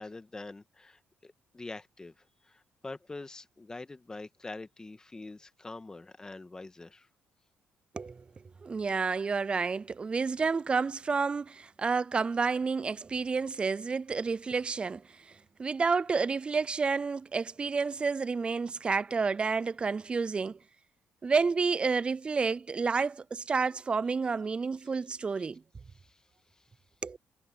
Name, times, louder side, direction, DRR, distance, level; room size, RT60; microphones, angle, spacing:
voice 1, 0.0-7.1 25.4-25.5 25.9-26.3 26.5-26.7, left 3 dB, 20° left, 1.6 m, -45 dB
voice 2, 8.6-20.6 21.2-25.6 27.0-27.2, right 4 dB, 25° right, 0.3 m, -30 dB
cardioid pair, 115°, 4 cm